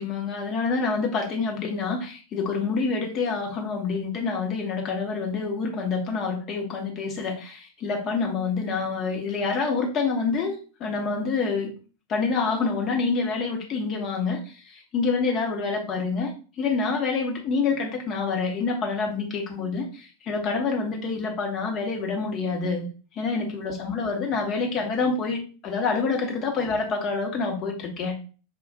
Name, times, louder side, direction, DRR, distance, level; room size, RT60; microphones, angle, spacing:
voice 1, 0.0-10.5 10.8-11.7 12.1-22.9 23.1-28.1, left 4 dB, 30° left, 1 dB, 1.0 m, -27 dB
5.1 x 2.4 x 2.4 m, 0.37 s
figure-of-eight pair, 90°, 0 cm